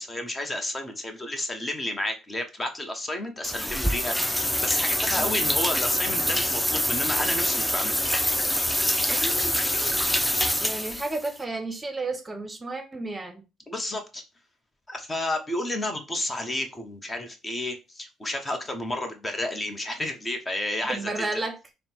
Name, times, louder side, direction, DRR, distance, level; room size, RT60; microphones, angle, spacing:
voice 1, 0.0-8.0 13.7-14.2 14.9-21.3, left 1 dB, 25° left, 0.9 m, -31 dB
sound 1, 3.4-11.3, equal, 5° left, 0.5 m, -25 dB
voice 2, 5.2-5.5 9.1-10.0 10.6-13.4 20.8-21.6, right 2 dB, 20° right, 0.8 m, -33 dB
3.6 x 2.1 x 4.4 m
supercardioid pair, 65°, 0 cm